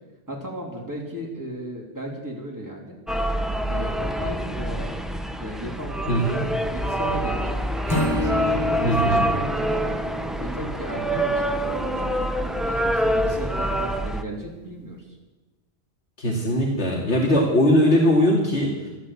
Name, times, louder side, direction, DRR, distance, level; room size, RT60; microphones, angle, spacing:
voice 1, 0.3-3.0 3.7-4.9 5.4-7.6 8.0-10.0 10.4-15.0, right 1 dB, 15° right, -2 dB, 3.3 m, -35 dB
sound 1, 3.1-14.2, right 1 dB, ahead, 0.6 m, -26 dB
voice 2, 6.1-6.4 8.8-9.2 16.2-18.9, equal, 80° left, -2 dB, 2.7 m, -20 dB
Acoustic guitar / Strum, 7.9-11.2, left 1 dB, 25° left, 3.1 m, -29 dB
14.0 x 11.5 x 8.5 m, 1.2 s
omnidirectional pair, 1.1 m